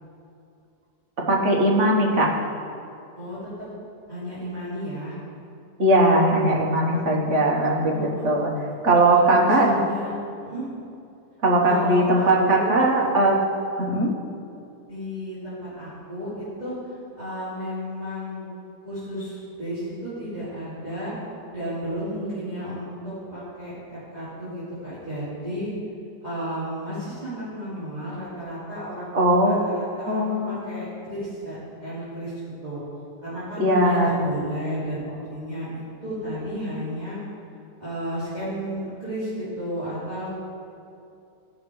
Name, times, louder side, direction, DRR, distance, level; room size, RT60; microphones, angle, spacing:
voice 1, 1.3-2.5 5.8-9.8 11.4-13.4 13.8-14.1 29.1-29.7 30.1-30.6 33.6-34.2, right 1 dB, 45° right, -2 dB, 1.5 m, -20 dB
voice 2, 3.2-3.7 4.1-5.1 7.3-7.8 8.1-8.2 9.1-10.1 10.4-10.6 11.6-12.9 14.9-16.8 17.1-18.5 18.8-21.1 21.5-25.7 26.2-32.3 32.6-32.8 33.2-37.2 37.8-40.3, equal, 25° right, -14 dB, 3.1 m, -33 dB
15.5 x 5.9 x 4.8 m, 2.6 s
omnidirectional pair, 1.8 m